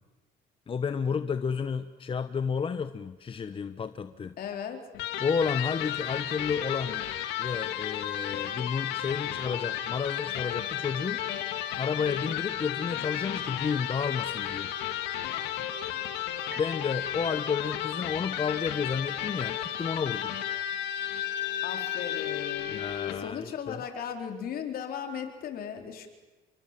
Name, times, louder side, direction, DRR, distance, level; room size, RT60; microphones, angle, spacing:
voice 1, 0.7-4.3 5.2-7.0 7.4-11.2 11.8-14.7 16.6-20.4 22.7-23.8, left 6 dB, 30° left, 10 dB, 1.1 m, -31 dB
voice 2, 4.4-4.8 15.9-16.6 21.6-22.8 23.1-26.1, left 8 dB, 60° left, 5 dB, 4.2 m, -37 dB
Electric guitar, 4.9-23.3, left 11 dB, 90° left, 2.5 m, -33 dB
sound 1, 16.5-20.4 21.0-21.1, right 2 dB, 10° right, 5.6 m, -53 dB
29.0 x 23.5 x 7.6 m, 1.1 s
cardioid pair, 110°, 17 cm